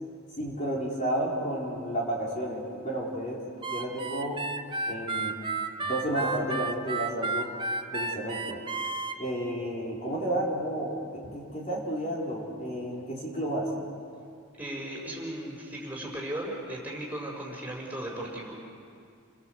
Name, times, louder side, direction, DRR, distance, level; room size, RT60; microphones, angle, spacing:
voice 1, 0.4-3.4 3.7-4.4 4.9-5.4 5.8-7.5 7.9-8.6 9.2-13.7, right 1 dB, 35° left, -4 dB, 4.4 m, -32 dB
Harmonica, 3.6-9.2, right 3 dB, 25° right, 1.1 m, -32 dB
voice 2, 14.6-18.6, right 1 dB, 10° right, -2 dB, 5.2 m, -36 dB
29.5 x 23.0 x 8.0 m, 2.3 s
head